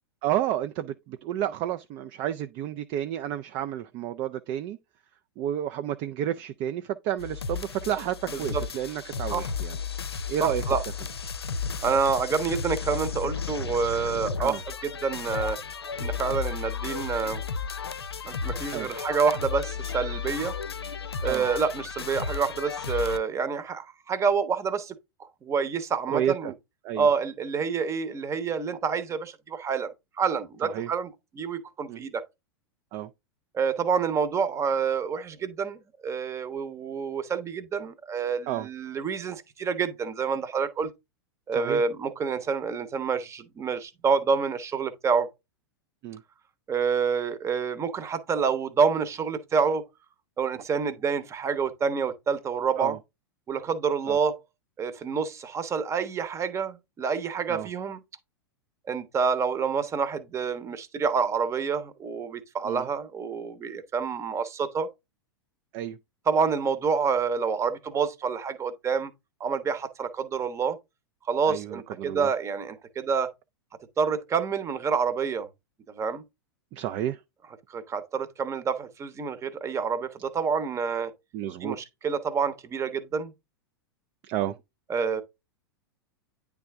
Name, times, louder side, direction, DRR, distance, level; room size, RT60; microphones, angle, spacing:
voice 1, 0.2-4.8 5.4-9.8 10.3-10.6 14.4-14.6 18.7-18.9 21.2-21.5 26.1-26.5 26.8-27.1 30.6-30.9 31.9-32.0 32.9-33.1 38.5-38.7 41.5-41.8 46.0-46.2 52.8-53.0 54.1-54.2 57.5-57.7 62.6-62.8 65.7-66.0 71.5-72.3 76.7-77.2 81.3-81.8 84.2-84.6, right 11 dB, 40° right, 0.4 m, -31 dB
sound 1, 7.2-23.2, left 6 dB, 80° left, 0.6 m, -34 dB
voice 2, 10.4-10.8 11.8-14.6 14.8-15.6 16.0-17.4 18.2-20.5 21.2-26.5 27.0-29.9 30.2-32.2 33.5-40.9 41.5-45.3 46.7-49.8 50.4-53.0 53.5-54.4 54.8-58.0 58.9-64.9 66.3-69.1 69.4-70.8 71.3-73.3 74.0-75.5 76.0-76.2 77.7-81.1 81.6-83.3 84.9-85.2, right 5 dB, 20° right, 1.0 m, -28 dB
9.5 x 3.5 x 3.5 m
figure-of-eight pair, 95°, 13 cm